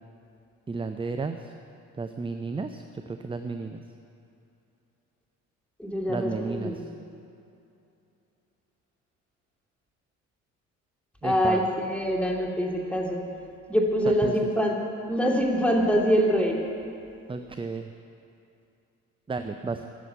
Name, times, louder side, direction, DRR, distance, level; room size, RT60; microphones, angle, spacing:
voice 1, 0.7-1.5 2.0-3.8 6.1-6.9 11.2-11.7 14.0-14.4 17.3-17.9 19.3-19.9, right 4 dB, 15° right, 7 dB, 0.6 m, -33 dB
voice 2, 5.8-6.8 11.2-13.2 13.7-14.7 15.1-16.6, equal, 5° left, -1 dB, 2.8 m, -24 dB
13.5 x 8.0 x 9.2 m, 2.7 s
figure-of-eight pair, 50°, 42 cm